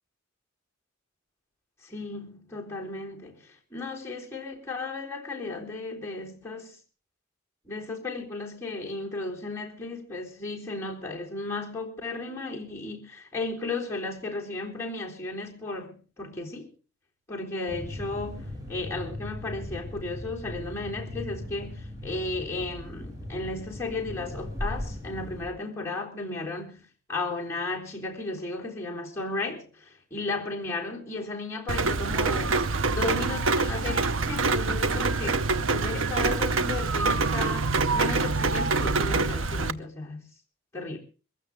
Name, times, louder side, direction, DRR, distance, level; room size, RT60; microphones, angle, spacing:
voice 1, 1.8-6.8 7.7-16.7 17.3-26.8 27.1-40.3 40.7-41.0, left 3 dB, 15° left, 3.6 m, -34 dB
Quercianella Jets, 17.7-25.5, left 1 dB, 15° right, 6.4 m, -38 dB
Rain, 31.7-39.7, right 3 dB, 75° right, 0.8 m, -25 dB
22.5 x 15.5 x 3.5 m
head